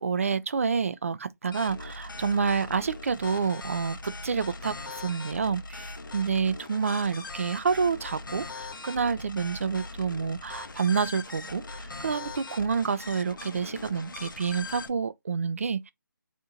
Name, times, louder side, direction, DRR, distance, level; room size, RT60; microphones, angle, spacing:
voice 1, 0.0-15.9, right 5 dB, 45° right, 0.4 m, -28 dB
sound 1, 1.5-14.9, left 3 dB, 80° left, 0.6 m, -41 dB
2.8 x 2.6 x 3.6 m
figure-of-eight pair, 165°, 11 cm